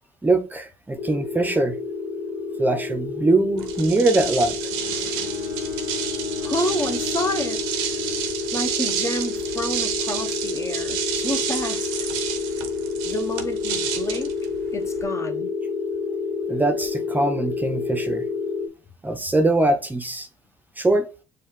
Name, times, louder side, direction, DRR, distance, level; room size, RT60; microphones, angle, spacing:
voice 1, 0.2-1.8 2.6-4.6 16.5-18.2 19.0-20.3 20.8-21.1, right 2 dB, 15° right, 0.7 m, -22 dB
sound 1, 1.0-18.7, left 4 dB, 50° left, 0.8 m, -29 dB
sound 2, 3.6-15.0, right 9 dB, 90° right, 0.8 m, -30 dB
Bowed string instrument, 4.7-8.9, left 8 dB, 85° left, 0.4 m, -36 dB
voice 2, 6.4-8.0 8.5-11.9 13.0-14.3 14.7-15.5, left 1 dB, 25° left, 0.9 m, -29 dB
7.0 x 2.4 x 3.2 m
supercardioid pair, 70°, 11 cm